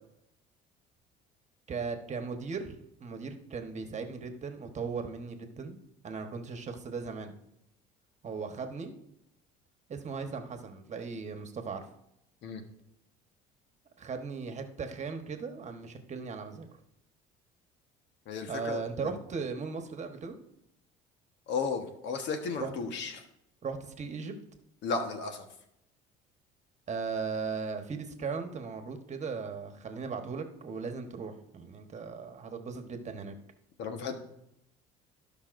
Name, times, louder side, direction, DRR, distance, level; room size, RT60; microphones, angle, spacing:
voice 1, 1.7-7.3 8.2-8.9 9.9-11.8 14.0-16.7 18.5-20.4 22.6-22.7 23.6-24.3 26.9-33.3, right 5 dB, 35° right, 6 dB, 1.3 m, -37 dB
voice 2, 18.3-19.2 21.5-23.2 24.8-25.4 33.8-34.1, left 4 dB, 65° left, 6 dB, 1.3 m, -34 dB
16.5 x 5.6 x 2.6 m, 0.81 s
supercardioid pair, 85°, 20 cm